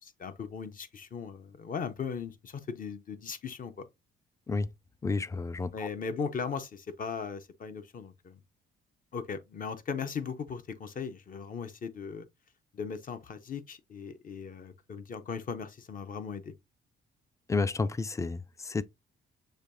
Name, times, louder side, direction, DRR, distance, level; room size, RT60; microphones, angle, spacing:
voice 1, 0.0-3.9 5.7-8.4 9.1-12.3 12.7-16.5, left 6 dB, 45° left, 0.8 m, -38 dB
voice 2, 5.0-5.9 17.5-18.8, left 3 dB, 15° left, 0.3 m, -31 dB
6.5 x 2.8 x 2.6 m
cardioid pair, 90°, 20 cm